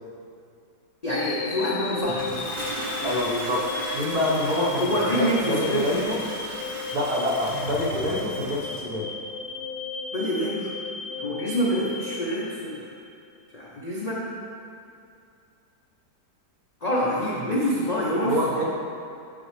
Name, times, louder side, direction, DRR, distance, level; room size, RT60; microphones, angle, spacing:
voice 1, 1.0-2.3 4.7-5.9 10.1-10.7 11.2-12.9 13.5-14.3 16.8-18.6, equal, 55° left, -6 dB, 0.4 m, -26 dB
sound 1, 1.1-13.2, left 5 dB, 90° left, 1.3 m, -35 dB
Toilet flush, 2.0-8.9, right 1 dB, 45° right, 0.6 m, -36 dB
voice 2, 3.0-3.6 3.9-6.2 6.9-9.1 18.2-18.6, left 1 dB, 65° right, -5 dB, 1.7 m, -26 dB
6.8 x 6.2 x 3.2 m, 2.5 s
omnidirectional pair, 1.9 m